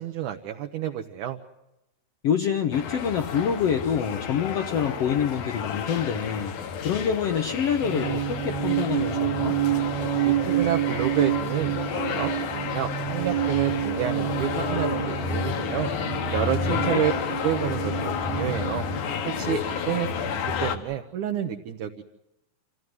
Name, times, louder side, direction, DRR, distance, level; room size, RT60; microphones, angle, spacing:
voice 1, 0.0-1.4 10.2-15.9 16.3-17.1 17.4-18.9 19.3-22.0, right 10 dB, 70° right, 4 dB, 2.1 m, -29 dB
voice 2, 2.2-6.5 6.8-9.6 16.7-17.0, left 7 dB, 80° left, 4 dB, 1.4 m, -26 dB
sound 1, 2.7-20.8, left 7 dB, 65° left, 2.6 m, -31 dB
sound 2, 7.8-19.8, right 13 dB, 85° right, 3.2 m, -29 dB
27.0 x 16.0 x 9.5 m, 0.93 s
omnidirectional pair, 4.4 m